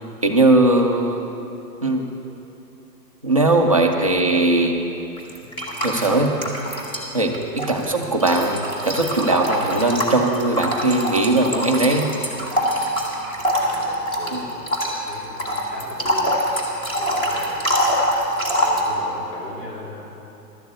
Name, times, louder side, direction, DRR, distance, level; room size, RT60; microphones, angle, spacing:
voice 1, 0.2-1.3 1.8-2.1 3.2-4.7 5.8-6.3 7.1-12.1 14.3-14.5, right 2 dB, 25° right, 0 dB, 0.3 m, -19 dB
voice 2, 3.6-4.1 7.6-7.8 13.6-16.4 17.0-17.7 18.5-20.1, left 2 dB, 70° left, -3 dB, 2.7 m, -39 dB
sound 1, 5.2-7.1 7.3-18.9, equal, 10° left, 1.0 m, -24 dB
12.0 x 7.0 x 8.0 m, 2.9 s
hypercardioid pair, 145°, 49 cm